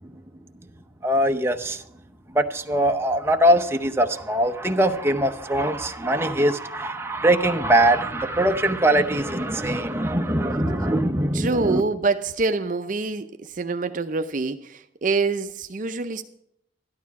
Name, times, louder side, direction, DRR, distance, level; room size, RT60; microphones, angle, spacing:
voice 1, 1.0-1.8 2.3-11.8, right 1 dB, 15° right, 0.8 m, -22 dB
voice 2, 11.3-13.3 13.5-16.2, right 3 dB, 45° right, 0.6 m, -25 dB
12.5 x 11.5 x 4.8 m
head